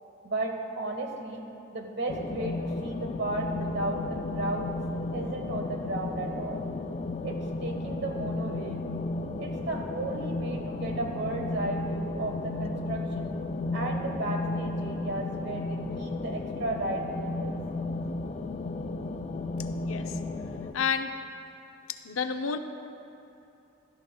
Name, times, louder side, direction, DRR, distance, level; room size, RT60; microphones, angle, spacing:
voice 1, 0.2-1.4 1.7-4.7 5.1-6.6 7.2-8.9 9.4-13.3 13.7-17.5, right 2 dB, 55° right, 3 dB, 1.2 m, -34 dB
sound 1, 2.1-20.7, left 2 dB, 35° left, 0.4 m, -33 dB
voice 2, 19.8-20.2 20.7-21.1 21.9-22.6, left 6 dB, 85° left, 7 dB, 0.6 m, -30 dB
16.0 x 12.5 x 2.3 m, 2.8 s
head